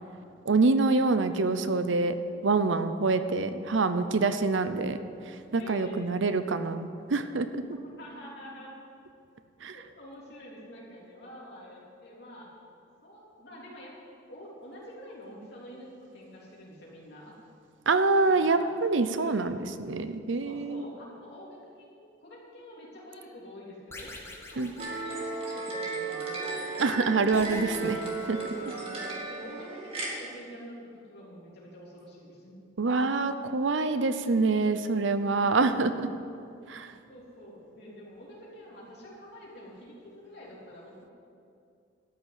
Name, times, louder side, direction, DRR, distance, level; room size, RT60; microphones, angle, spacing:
voice 1, 0.5-2.2 2.4-5.0 5.3-7.6 9.6-9.8 17.9-20.9 24.6-24.7 26.8-28.0 28.3-28.4 32.8-35.9 36.7-36.9, right 3 dB, 80° right, 11 dB, 0.7 m, -26 dB
voice 2, 5.6-6.1 7.9-8.7 9.7-12.5 13.0-14.0 14.3-17.4 18.3-18.7 19.1-19.6 20.4-26.6 28.5-32.6 37.1-41.1, equal, 55° left, -5 dB, 3.5 m, -47 dB
sound 1, 23.9-25.9 27.3-29.1, left 2 dB, 15° left, 1.3 m, -46 dB
sound 2, 24.8-30.1, right 3 dB, 30° right, 2.1 m, -35 dB
13.0 x 6.6 x 8.9 m, 2.5 s
head